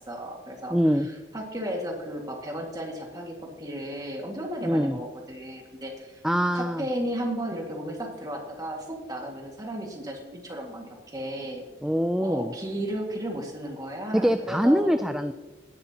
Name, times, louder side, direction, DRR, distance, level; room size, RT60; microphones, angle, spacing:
voice 1, 0.1-6.2 6.5-11.6 12.2-15.0, equal, 20° right, 1 dB, 1.9 m, -34 dB
voice 2, 0.7-1.1 4.6-5.0 6.2-6.9 11.8-12.5 14.1-15.3, equal, 5° right, 8 dB, 0.3 m, -23 dB
17.5 x 10.5 x 2.9 m, 1.2 s
head